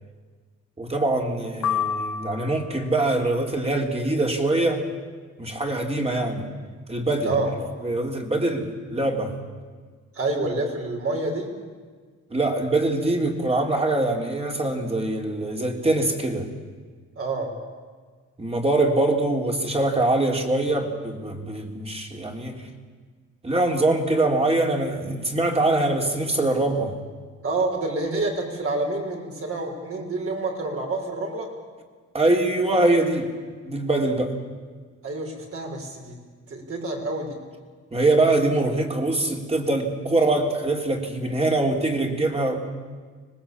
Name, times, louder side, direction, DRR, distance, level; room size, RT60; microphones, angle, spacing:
voice 1, 0.8-4.8 5.4-6.5 6.9-7.3 7.8-9.3 12.3-16.5 18.4-22.6 23.4-27.0 32.1-33.3 33.7-34.3 37.9-42.6, right 2 dB, 20° right, 2 dB, 3.7 m, -23 dB
sound 1, 1.6-2.9, left 7 dB, 75° left, 1.6 m, -28 dB
voice 2, 10.1-11.5 17.2-17.5 27.4-31.5 35.0-36.2 36.5-37.4, right 2 dB, 50° right, 1 dB, 6.3 m, -28 dB
25.0 x 20.0 x 8.8 m, 1.5 s
cardioid pair, 90°, 30 cm